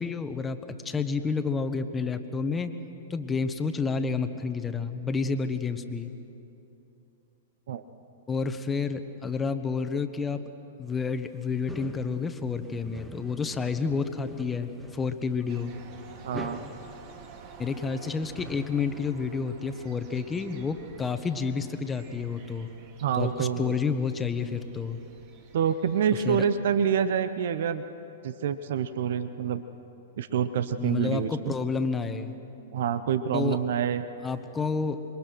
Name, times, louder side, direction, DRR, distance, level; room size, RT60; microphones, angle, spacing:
voice 1, 0.0-2.7 3.1-6.1 8.3-10.4 10.8-15.7 17.6-22.7 23.2-25.0 26.2-26.4 30.8-32.3 33.3-33.6 34.2-35.0, left 5 dB, 15° left, 9 dB, 1.3 m, -30 dB
sound 1, 10.9-19.4, equal, 5° right, 1.6 m, -46 dB
sound 2, 15.5-26.5, right 5 dB, 50° right, 2.5 m, -50 dB
voice 2, 16.2-16.6 23.0-23.7 25.5-27.8 28.2-29.6 30.2-31.5 32.7-34.0, right 8 dB, 65° right, 12 dB, 0.8 m, -27 dB
26.5 x 22.5 x 6.2 m, 2.9 s
hypercardioid pair, 115°, 0 cm